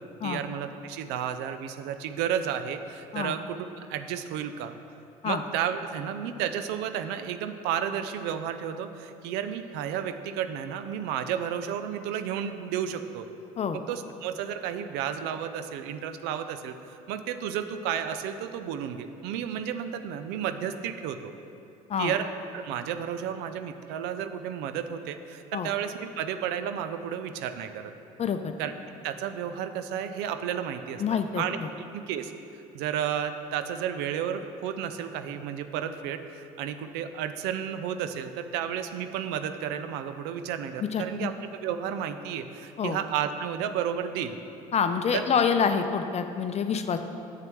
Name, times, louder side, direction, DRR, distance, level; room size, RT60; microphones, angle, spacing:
voice 1, 0.2-4.7 5.2-13.3 13.7-21.3 22.0-27.9 28.6-28.7 29.0-31.6 31.9-32.3 32.7-41.3 41.6-44.4 45.1-45.2, right 9 dB, 65° right, 10 dB, 0.5 m, -32 dB
voice 2, 28.2-28.5 31.0-31.7 40.8-41.3 42.8-43.0 44.7-47.0, left 6 dB, 35° left, 8 dB, 0.6 m, -27 dB
10.5 x 7.6 x 3.1 m, 2.7 s
hypercardioid pair, 60°, 19 cm